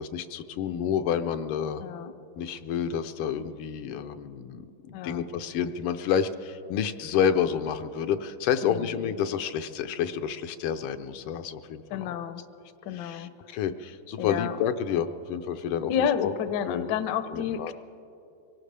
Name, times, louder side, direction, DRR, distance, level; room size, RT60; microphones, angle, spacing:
voice 1, 0.0-1.8 2.4-4.6 4.9-12.3 12.9-16.3 16.7-16.9 17.3-17.7, left 8 dB, 85° left, 9 dB, 1.6 m, -29 dB
voice 2, 1.8-2.1 4.9-5.3 8.6-8.9 11.9-12.4 12.8-13.3 14.2-14.6 15.9-17.7, left 8 dB, 70° left, 11 dB, 1.1 m, -30 dB
24.5 x 18.0 x 3.3 m, 2.8 s
omnidirectional pair, 2.4 m